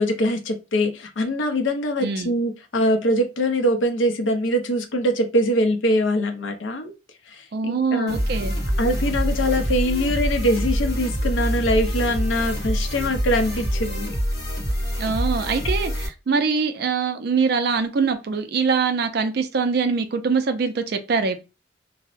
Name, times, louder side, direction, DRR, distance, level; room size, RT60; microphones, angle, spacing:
voice 1, 0.0-6.9 7.3-8.2 8.8-14.2, equal, 80° left, 0.5 m, -23 dB
voice 2, 2.0-2.3 7.5-8.5 15.0-21.4, right 5 dB, 55° right, 0.4 m, -23 dB
sound 1, 8.1-16.1, equal, 55° left, 1.1 m, -25 dB
2.6 x 2.1 x 2.4 m
head